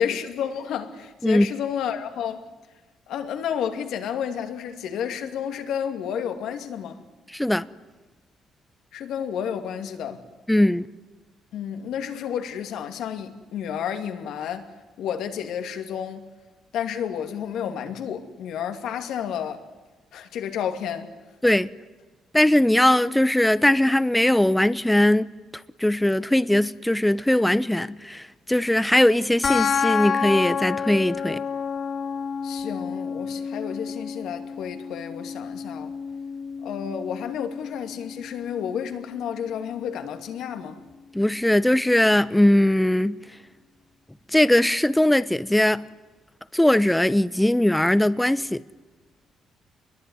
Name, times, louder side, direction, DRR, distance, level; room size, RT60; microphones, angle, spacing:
voice 1, 0.0-2.5 3.1-7.0 8.9-10.2 11.5-14.7 15.0-16.2 16.7-19.6 20.1-21.1 32.4-35.9 36.6-40.8, left 8 dB, 80° left, 2.5 m, -31 dB
voice 2, 7.3-7.6 10.5-10.9 21.4-21.7 22.3-25.3 25.8-31.4 41.1-43.2 44.3-45.8 46.5-48.6, left 1 dB, 5° left, 0.8 m, -20 dB
sound 1, 29.4-40.4, left 6 dB, 40° left, 1.6 m, -30 dB
27.0 x 22.0 x 9.7 m
cardioid pair, 90°, 0 cm